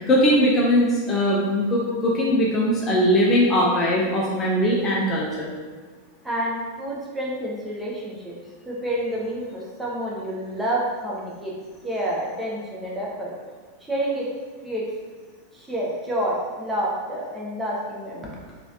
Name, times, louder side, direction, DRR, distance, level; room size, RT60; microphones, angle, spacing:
voice 1, 0.1-5.5, equal, 25° left, -4 dB, 0.5 m, -20 dB
voice 2, 6.2-8.4 8.7-11.5 11.8-13.3 13.8-14.3 14.6-14.9 15.5-18.4, right 1 dB, 10° right, -5 dB, 0.7 m, -28 dB
3.1 x 2.4 x 2.6 m, 1.4 s
figure-of-eight pair, 90°, 0 cm